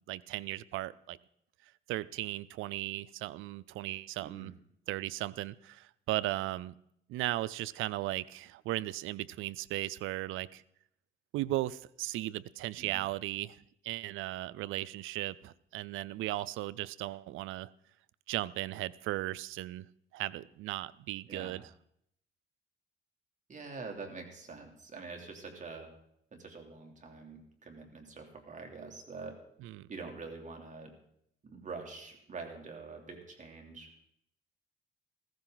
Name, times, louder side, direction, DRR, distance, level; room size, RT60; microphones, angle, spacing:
voice 1, 0.1-1.2 1.9-4.5 4.9-6.7 7.1-10.6 11.3-17.7 18.3-19.9 20.1-21.6 29.6-29.9, right 16 dB, 90° right, 20 dB, 0.5 m, -36 dB
voice 2, 4.2-4.5 12.8-13.0 21.3-21.6 23.5-25.9 26.3-29.4 29.9-30.9 31.4-33.9, right 4 dB, 40° right, 2 dB, 3.1 m, -45 dB
15.5 x 14.5 x 4.0 m, 0.72 s
cardioid pair, 90°, 20 cm